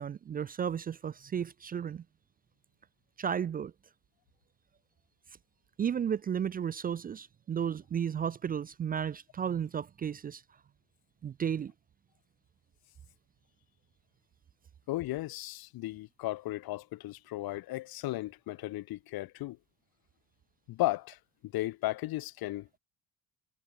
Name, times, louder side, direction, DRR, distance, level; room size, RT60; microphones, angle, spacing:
voice 1, 0.0-2.0 3.2-3.7 5.8-10.4 11.2-11.7, right 8 dB, 25° right, 0.4 m, -33 dB
voice 2, 14.9-19.6 20.7-21.2 21.4-22.8, left 17 dB, 75° left, 1.9 m, -35 dB
cardioid pair, 175°, 36 cm